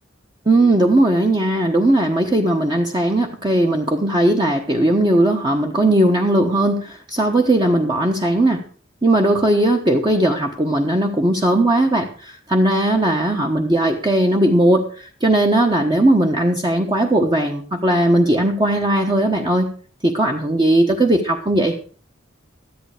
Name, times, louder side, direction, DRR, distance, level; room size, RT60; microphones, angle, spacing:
voice 1, 0.5-8.6 9.0-19.7 20.0-21.7, right 1 dB, 25° right, 2 dB, 1.2 m, -18 dB
13.5 x 11.0 x 5.0 m, 0.41 s
head